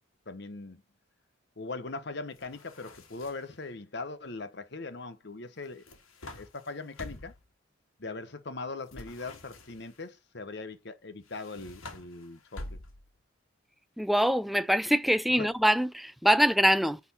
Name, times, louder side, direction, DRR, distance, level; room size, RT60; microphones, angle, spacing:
voice 1, 0.3-0.8 1.6-5.8 6.2-7.3 8.0-12.8 15.4-15.5, left 3 dB, 55° left, 1.0 m, -40 dB
sound 1, 2.3-3.6 5.6-7.5 8.9-10.0 11.2-13.2, left 2 dB, 85° left, 2.0 m, -47 dB
voice 2, 14.0-17.0, equal, ahead, 0.3 m, -24 dB
9.5 x 4.2 x 4.2 m
head